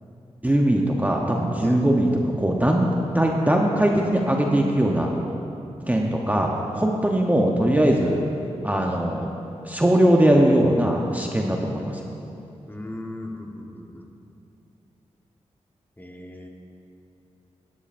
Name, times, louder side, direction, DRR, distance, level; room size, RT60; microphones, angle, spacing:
voice 1, 0.4-5.1 5.9-8.2 8.6-9.3 9.6-12.1, right 1 dB, 15° right, 0 dB, 0.9 m, -20 dB
voice 2, 12.7-14.1 16.0-16.5, left 1 dB, 15° left, 1 dB, 1.2 m, -37 dB
13.0 x 11.0 x 2.6 m, 2.7 s
cardioid pair, 50°, 12 cm